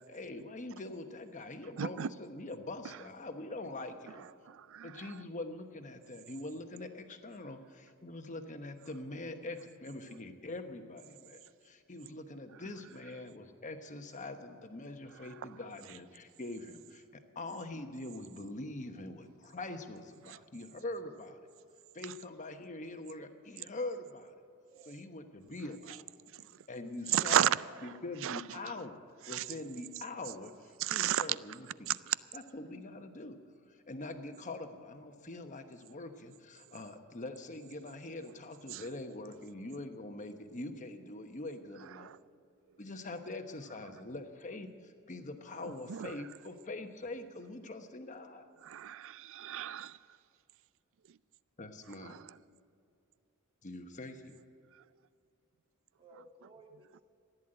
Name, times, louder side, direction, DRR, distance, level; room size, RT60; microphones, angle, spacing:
voice 1, 0.1-4.3 4.8-21.4 21.9-24.3 24.9-26.0 26.7-27.5 27.8-29.0 29.3-31.9 32.3-33.4 33.7-42.1 42.8-48.5 51.6-52.2 53.6-54.4, left 2 dB, 35° left, 1.1 m, -43 dB
voice 2, 1.8-2.1 4.5-5.1 20.3-20.4 27.1-27.5 28.2-28.4 29.3-29.4 30.8-31.3 31.9-32.1 38.7-38.8 42.0-42.2 45.9-46.1 48.6-50.0 52.0-52.2, right 11 dB, 60° right, 0.4 m, -32 dB
voice 3, 24.6-25.0 27.6-28.0 49.4-49.8 56.0-57.0, right 2 dB, 25° right, 1.7 m, -58 dB
15.0 x 10.5 x 7.8 m
head